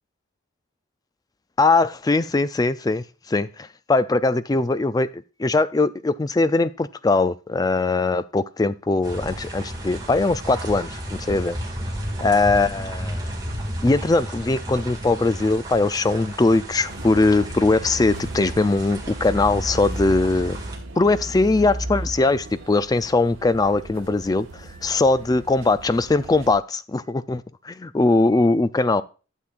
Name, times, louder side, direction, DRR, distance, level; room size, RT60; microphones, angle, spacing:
voice 1, 1.6-5.1 5.4-11.6 12.2-13.2 13.8-20.6 21.0-29.0, left 3 dB, 20° left, 0.3 m, -21 dB
sound 1, 9.0-20.8, right 1 dB, 20° right, 1.9 m, -33 dB
sound 2, 16.8-26.6, right 1 dB, 70° right, 1.2 m, -35 dB
12.0 x 7.3 x 2.4 m
head